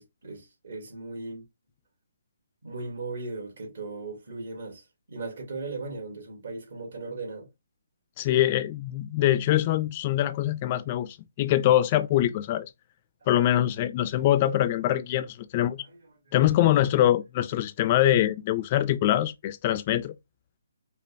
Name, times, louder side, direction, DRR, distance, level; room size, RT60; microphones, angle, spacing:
voice 1, 0.0-1.4 2.6-7.5 15.9-16.0 16.3-16.4, right 3 dB, 65° right, 2.3 m, -37 dB
voice 2, 8.2-12.7 13.3-15.8 16.3-20.2, left 13 dB, 30° left, 0.3 m, -24 dB
5.0 x 2.4 x 2.6 m
hypercardioid pair, 150°, 0 cm